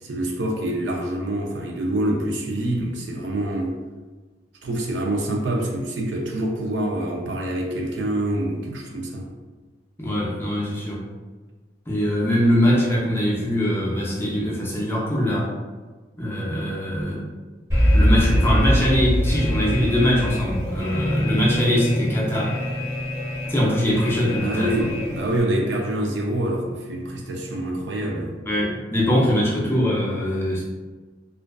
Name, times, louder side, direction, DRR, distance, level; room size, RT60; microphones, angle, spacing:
voice 1, 0.0-3.7 4.6-9.3 24.3-28.3, right 1 dB, 85° right, 1 dB, 0.5 m, -26 dB
voice 2, 10.0-11.0 11.9-15.5 16.2-17.2 17.9-22.6 23.5-24.7 28.5-30.7, equal, 15° left, -5 dB, 0.5 m, -22 dB
Alarm, 17.7-25.4, equal, 20° right, 1.1 m, -24 dB
sound 1, 20.9-28.1, equal, 90° left, 0.4 m, -31 dB
2.5 x 2.2 x 2.2 m, 1.3 s
head